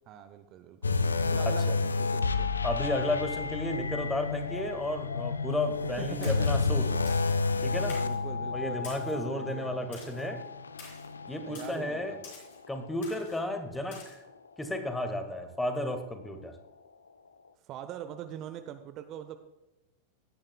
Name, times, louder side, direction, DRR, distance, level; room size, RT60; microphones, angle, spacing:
voice 1, 0.1-1.0 1.3-2.5 6.0-6.6 8.0-9.9 11.4-12.2 17.6-19.4, right 10 dB, 35° right, 9 dB, 0.7 m, -43 dB
sound 1, 0.8-12.3 12.6-12.9 13.5-13.6, left 4 dB, 75° left, 0.5 m, -31 dB
voice 2, 2.6-6.9 7.6-8.0 8.5-10.4 11.3-12.2 12.7-14.2 14.6-16.5, left 1 dB, 5° left, 6 dB, 1.7 m, -33 dB
Splash splatter, 6.2-6.6 7.1-7.4 7.9-8.2 8.8-9.2 9.9-10.2 10.8-11.1 11.5-11.8 12.2-12.6 13.0-13.4 13.9-14.2, left 4 dB, 50° left, 4.2 m, -48 dB
17.5 x 10.5 x 2.3 m, 1.0 s
figure-of-eight pair, 90°, 0 cm